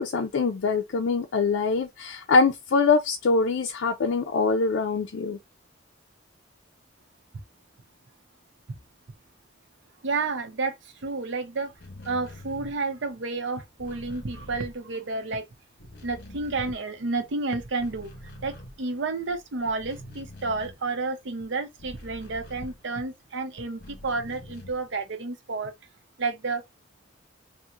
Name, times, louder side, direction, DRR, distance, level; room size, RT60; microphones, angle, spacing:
voice 1, 0.0-5.4, left 4 dB, 75° left, 0.4 m, -23 dB
voice 2, 10.0-11.7 12.0-15.5 16.0-18.1 18.4-25.7 26.2-26.6, right 3 dB, 70° right, 0.6 m, -30 dB
sound 1, 11.7-15.4 15.6-17.3 17.6-23.3 23.7-25.0, left 1 dB, 55° left, 1.1 m, -46 dB
2.9 x 2.1 x 3.6 m
head